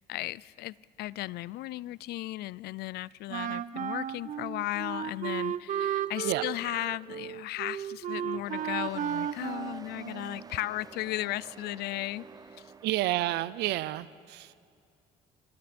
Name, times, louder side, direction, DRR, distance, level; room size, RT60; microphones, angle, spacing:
voice 1, 0.1-12.3, left 17 dB, 70° left, 22 dB, 0.4 m, -35 dB
Wind instrument woodwind instrument, 3.3-10.5, right 9 dB, 50° right, 0.8 m, -34 dB
sound 1, 8.3-13.4, right 5 dB, 20° right, 0.5 m, -49 dB
voice 2, 12.8-14.6, right 16 dB, 80° right, 18 dB, 0.5 m, -30 dB
26.5 x 25.5 x 4.3 m, 2.3 s
cardioid pair, 110°, 17 cm